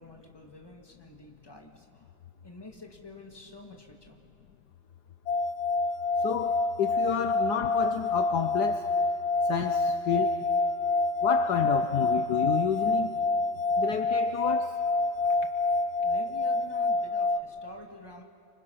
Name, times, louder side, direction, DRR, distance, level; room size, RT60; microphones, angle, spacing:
voice 1, 0.0-2.1 2.4-4.2 16.0-18.2, left 1 dB, 10° left, 1 dB, 2.2 m, -48 dB
sound 1, 5.3-17.4, left 3 dB, 85° left, 1.6 m, -27 dB
voice 2, 6.2-8.9 9.5-10.5 11.2-13.2 13.8-14.8, left 8 dB, 65° left, 8 dB, 1.3 m, -30 dB
30.0 x 25.5 x 5.7 m, 2.6 s
omnidirectional pair, 2.1 m